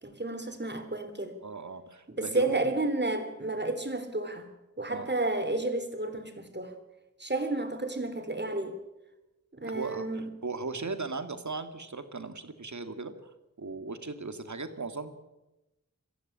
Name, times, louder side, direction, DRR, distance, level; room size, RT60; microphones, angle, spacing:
voice 1, 0.0-1.3 2.1-4.5 4.8-6.7 7.2-8.8 9.5-10.3, right 2 dB, 35° right, 3.4 m, -31 dB
voice 2, 1.4-2.7 4.9-5.1 9.6-13.3 13.6-15.1, right 3 dB, 70° right, 2.2 m, -38 dB
23.5 x 15.0 x 8.8 m
wide cardioid pair, 60°, 30 cm